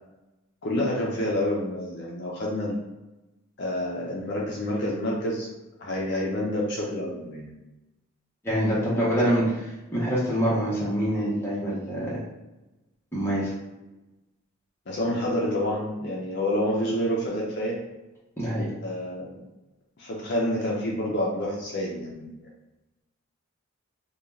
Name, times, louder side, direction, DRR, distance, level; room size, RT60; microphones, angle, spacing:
voice 1, 0.6-2.7 3.6-5.5 5.8-7.5 8.6-9.4 14.9-17.8 18.8-19.4 20.0-22.5, left 1 dB, 50° left, -3 dB, 0.5 m, -28 dB
voice 2, 8.4-9.4 9.9-12.2 13.1-13.5 18.4-18.6, equal, 10° left, -8 dB, 0.7 m, -25 dB
2.4 x 2.2 x 3.1 m, 1.0 s
head